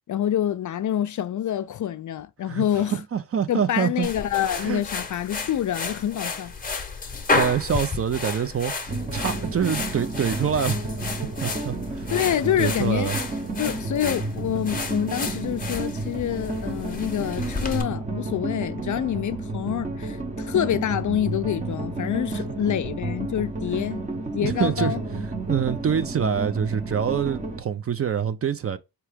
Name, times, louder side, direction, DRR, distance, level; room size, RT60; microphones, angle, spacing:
voice 1, 0.1-3.0 3.5-6.5 12.1-13.1 13.6-24.0 24.3-25.0, left 10 dB, 50° left, 0.4 m, -27 dB
voice 2, 2.5-4.1 4.6-4.8 7.3-10.8 11.4-12.1 12.6-13.2 24.4-24.9 25.5-28.8, right 8 dB, 35° right, 0.4 m, -26 dB
sound 1, 4.0-17.8, left 3 dB, 20° left, 0.8 m, -32 dB
sound 2, 8.9-27.6, right 2 dB, 20° right, 0.8 m, -31 dB
4.6 x 2.9 x 3.4 m
wide cardioid pair, 115°, 39 cm